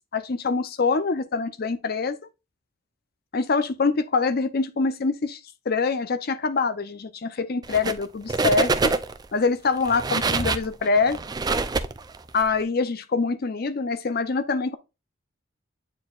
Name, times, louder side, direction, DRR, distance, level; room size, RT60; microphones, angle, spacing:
voice 1, 0.1-2.2 3.3-5.4 5.7-8.9 9.3-11.2 12.3-14.8, left 4 dB, 50° left, 0.6 m, -24 dB
sound 1, 7.6-8.0 8.3-9.2 9.8-12.4, right 3 dB, 20° right, 0.4 m, -25 dB
8.7 x 4.5 x 2.4 m
head